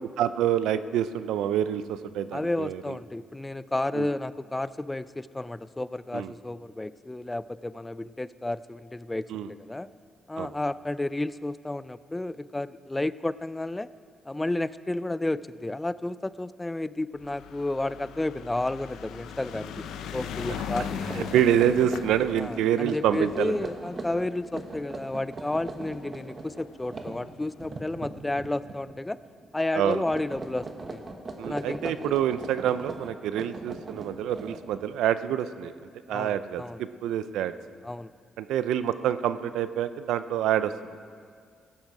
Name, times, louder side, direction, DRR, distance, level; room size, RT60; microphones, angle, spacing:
voice 1, 0.2-2.9 4.0-4.1 6.1-6.3 9.3-9.5 10.4-10.5 21.2-23.7 29.7-30.0 31.4-35.7 36.1-37.5 38.4-40.7, right 10 dB, 85° right, 13 dB, 0.5 m, -27 dB
voice 2, 2.3-9.9 10.3-13.9 14.3-19.9 20.1-21.7 22.4-29.2 29.5-31.0 31.4-31.9 36.1-36.8 37.8-38.1, left 2 dB, 15° left, 17 dB, 0.3 m, -32 dB
sound 1, 17.2-25.7 26.5-26.6 26.8-26.9 27.1-27.2, left 7 dB, 85° left, 0.6 m, -39 dB
sound 2, 19.5-19.9 20.2-20.4 20.9-29.0 29.2-29.6 29.8-34.9, right 3 dB, 35° right, 1.4 m, -40 dB
16.0 x 11.5 x 4.8 m, 2.1 s
cardioid pair, 90°, 0 cm